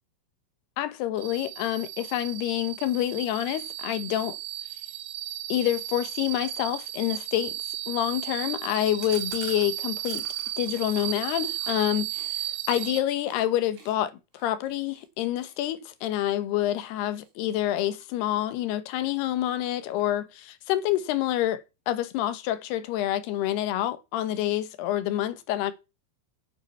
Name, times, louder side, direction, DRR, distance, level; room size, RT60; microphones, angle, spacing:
voice 1, 0.8-4.4 5.5-7.6 7.9-10.2 10.6-25.7, left 13 dB, 80° left, 3.0 m, -27 dB
sound 1, 1.2-13.0, right 14 dB, 80° right, 2.9 m, -35 dB
Chewing mastication, 9.0-12.9 13.2-13.4 13.7-16.7 17.1-17.5 17.7-18.6 18.9-19.0 19.3-19.4 19.7-20.3, right 4 dB, 50° right, 4.4 m, -48 dB
9.5 x 8.7 x 5.6 m
omnidirectional pair, 4.7 m